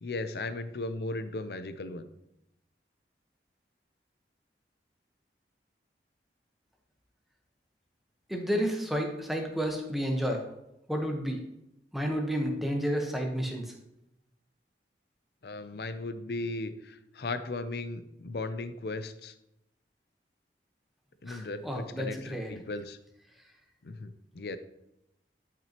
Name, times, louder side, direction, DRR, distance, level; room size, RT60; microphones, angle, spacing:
voice 1, 0.0-2.0 15.4-19.3 21.2-23.0 23.8-24.6, left 2 dB, 65° left, 11 dB, 0.5 m, -37 dB
voice 2, 8.3-10.5 10.9-11.4 11.9-13.7 21.3-22.5, equal, ahead, 1 dB, 1.1 m, -31 dB
11.0 x 5.9 x 2.9 m, 0.85 s
head